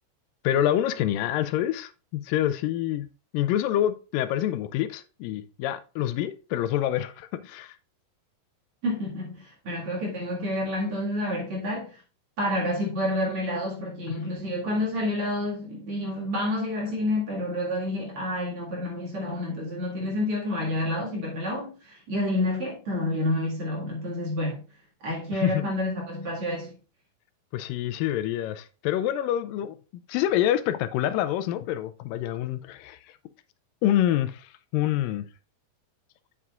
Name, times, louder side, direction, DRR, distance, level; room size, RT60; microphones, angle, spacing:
voice 1, 0.4-3.1 3.3-7.8 25.3-25.6 27.5-33.0 33.8-35.3, left 12 dB, 85° left, 2.3 m, -27 dB
voice 2, 8.8-11.9 12.4-24.6 25.0-26.7, left 1 dB, 45° right, 2.6 m, -29 dB
8.2 x 7.4 x 2.4 m
omnidirectional pair, 3.9 m